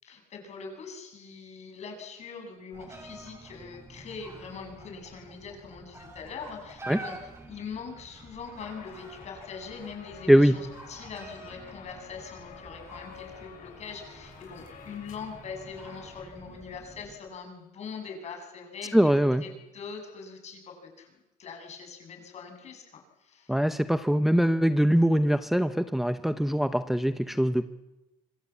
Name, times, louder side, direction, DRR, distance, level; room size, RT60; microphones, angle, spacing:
voice 1, 0.0-21.1 21.4-23.5, left 5 dB, 50° left, 3 dB, 7.9 m, -42 dB
sound 1, 2.7-17.1, right 2 dB, 20° right, 6.5 m, -48 dB
sound 2, 8.6-16.3, left 8 dB, 70° left, 6.9 m, -50 dB
voice 2, 18.9-19.4 23.5-27.6, equal, ahead, 10 dB, 0.9 m, -22 dB
26.0 x 23.0 x 8.6 m, 1.0 s
cardioid pair, 115°, 14 cm